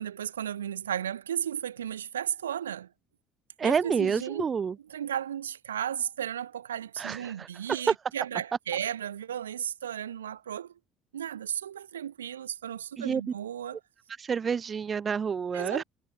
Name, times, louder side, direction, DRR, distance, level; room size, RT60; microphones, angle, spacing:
voice 1, 0.0-2.9 3.6-4.4 4.8-10.7 11.1-13.8 15.5-15.8, right 9 dB, 80° right, 1.6 m, -34 dB
voice 2, 3.6-4.7 7.0-7.2 13.0-13.2 14.2-15.8, right 6 dB, 35° right, 1.1 m, -28 dB
figure-of-eight pair, 55°, 0 cm